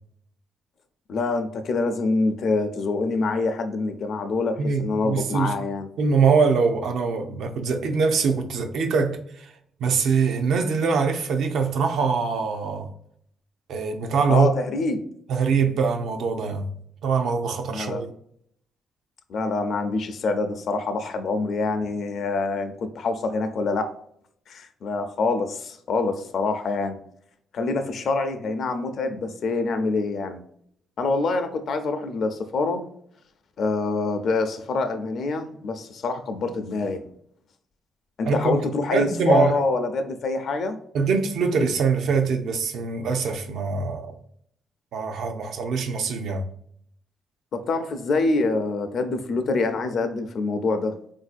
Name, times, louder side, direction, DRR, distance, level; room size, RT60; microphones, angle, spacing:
voice 1, 1.1-5.9 14.3-15.0 17.7-18.0 19.3-23.9 24.5-27.0 27.5-30.4 31.0-32.8 33.6-37.1 38.2-40.8 47.5-51.0, left 3 dB, 60° left, 0.5 m, -25 dB
voice 2, 4.6-5.5 6.0-9.5 9.8-12.9 13.7-14.5 15.3-16.7 17.0-18.1 38.3-39.6 40.9-44.2 44.9-46.4, right 5 dB, 75° right, 0.5 m, -23 dB
3.8 x 2.6 x 2.5 m
cardioid pair, 90°, 0 cm